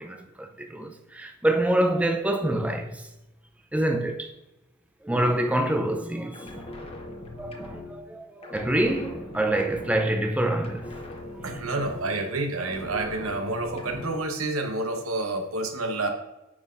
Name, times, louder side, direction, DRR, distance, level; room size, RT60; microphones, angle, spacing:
voice 1, 0.0-3.0 3.7-4.3 5.0-6.6 7.4-10.8, right 1 dB, 5° right, 0.4 m, -26 dB
sound 1, 6.3-8.2 8.4-10.3 10.5-12.3 12.6-14.3, left 2 dB, 30° left, 0.9 m, -40 dB
voice 2, 11.4-16.1, right 2 dB, 80° right, 1.0 m, -29 dB
9.1 x 5.6 x 2.5 m
head